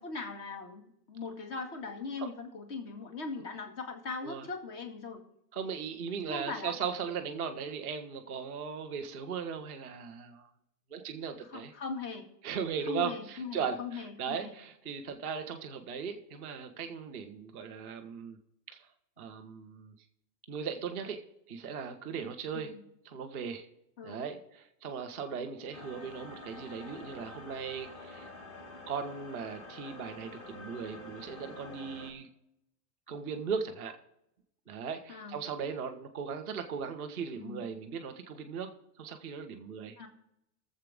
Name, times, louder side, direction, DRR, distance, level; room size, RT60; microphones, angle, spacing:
voice 1, 0.0-5.2 6.3-6.7 11.5-12.2 12.9-14.5 22.5-22.8 24.0-24.3 35.1-35.4 37.4-37.6 40.0-40.1, left 4 dB, 45° left, 4 dB, 2.3 m, -40 dB
voice 2, 5.5-10.5 10.9-11.7 12.4-18.4 18.7-18.9 19.2-19.9 20.5-21.2 21.5-22.7 23.0-23.6 24.0-28.3 28.9-32.3 33.1-34.0 34.7-38.7 39.0-40.0, right 6 dB, 10° left, -11 dB, 0.3 m, -38 dB
sound 1, 25.7-32.1, left 2 dB, 30° left, 1.6 m, -48 dB
21.5 x 7.4 x 3.6 m, 0.79 s
supercardioid pair, 175°, 49 cm